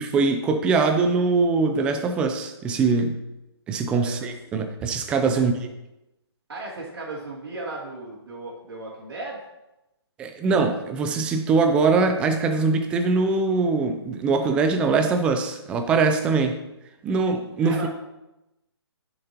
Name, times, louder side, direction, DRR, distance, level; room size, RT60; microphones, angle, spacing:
voice 1, 0.0-3.2 3.7-5.5 10.2-16.6 17.0-17.9, right 4 dB, 5° right, 7 dB, 0.4 m, -22 dB
voice 2, 5.1-5.4 6.5-9.5 17.6-17.9, right 2 dB, 65° right, -8 dB, 2.7 m, -36 dB
10.5 x 6.7 x 2.9 m, 0.94 s
hypercardioid pair, 155°, 14 cm